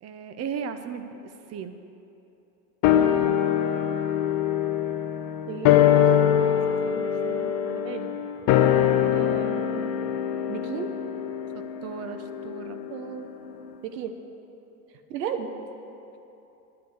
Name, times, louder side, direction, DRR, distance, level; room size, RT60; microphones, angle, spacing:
voice 1, 0.0-1.8 11.5-12.8, right 6 dB, 30° right, 9 dB, 0.8 m, -36 dB
sound 1, 2.8-13.4 13.7-13.8, left 10 dB, 45° left, 0.8 m, -23 dB
voice 2, 5.5-5.9 6.2-6.6 6.8-8.1 9.1-10.1 10.5-10.9 12.9-13.3 13.9-14.1 15.1-15.5, right 7 dB, 80° right, 7 dB, 1.1 m, -35 dB
10.5 x 6.7 x 8.1 m, 2.9 s
hypercardioid pair, 100°, 49 cm